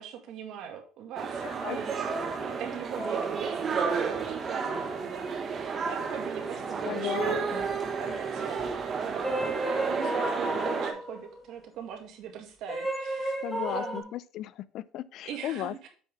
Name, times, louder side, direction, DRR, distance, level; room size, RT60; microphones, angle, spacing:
voice 1, 0.0-13.3 13.7-14.1 15.3-15.9, right 8 dB, 65° right, 2.0 m, -42 dB
sound 1, 1.2-10.9, right 6 dB, 35° right, 1.3 m, -31 dB
voice 2, 1.4-1.8 6.8-7.7 13.4-15.9, left 13 dB, 60° left, 0.4 m, -36 dB
sound 2, 1.6-5.4 6.1-11.5 12.7-14.0, equal, 15° left, 1.6 m, -36 dB
7.6 x 5.6 x 3.4 m
cardioid pair, 125°, 0 cm